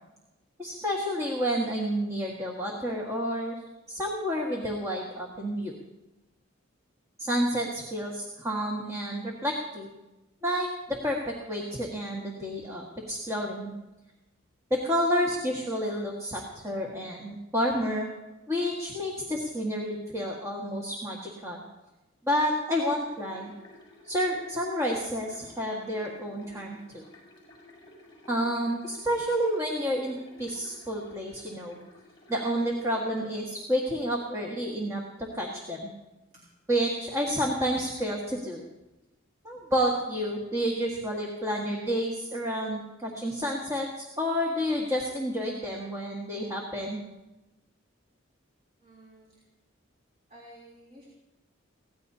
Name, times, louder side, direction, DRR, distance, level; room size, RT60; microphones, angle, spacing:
voice 1, 0.6-3.6 3.9-5.7 7.2-10.0 10.4-13.7 14.7-18.1 18.5-21.6 22.2-23.5 24.0-27.0 28.3-31.8 32.3-35.0 35.3-35.9 36.7-38.6 39.4-47.0, equal, 15° right, -2 dB, 1.7 m, -30 dB
sound 1, 23.0-33.4, left 1 dB, 25° left, 7.2 m, -54 dB
voice 2, 48.8-49.4 50.3-51.1, right 1 dB, 35° right, -5 dB, 3.3 m, -52 dB
23.5 x 17.5 x 2.8 m, 1.0 s
head